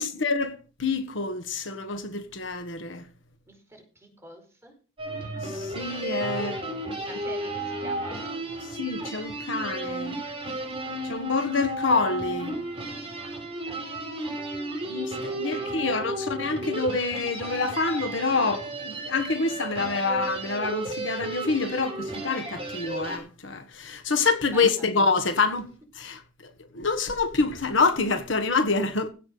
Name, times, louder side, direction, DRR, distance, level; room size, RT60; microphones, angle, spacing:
voice 1, 0.0-3.0 5.1-6.6 8.8-10.2 11.0-12.5 14.9-25.7 25.9-29.1, left 4 dB, 70° left, 1.5 m, -27 dB
voice 2, 3.5-4.7 6.9-8.4 13.2-16.1 24.5-25.1, right 1 dB, 15° right, 4.9 m, -46 dB
sound 1, 5.0-23.2, right 1 dB, 30° right, 5.0 m, -33 dB
16.0 x 5.9 x 6.7 m
head